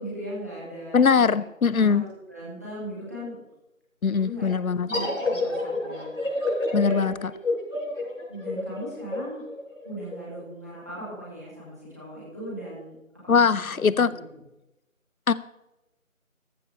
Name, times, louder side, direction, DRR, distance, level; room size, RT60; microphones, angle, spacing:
voice 1, 0.0-1.4 1.7-3.4 4.1-7.3 8.3-9.4 9.8-12.9 13.3-14.2, right 1 dB, 10° right, -7 dB, 2.1 m, -38 dB
voice 2, 0.9-2.0 4.0-4.9 6.7-7.1 13.3-14.1 15.3-15.4, left 6 dB, 85° left, 17 dB, 0.7 m, -21 dB
sound 1, 4.9-10.2, left 2 dB, 65° left, 5.1 m, -29 dB
14.5 x 11.0 x 3.3 m, 0.92 s
figure-of-eight pair, 175°, 41 cm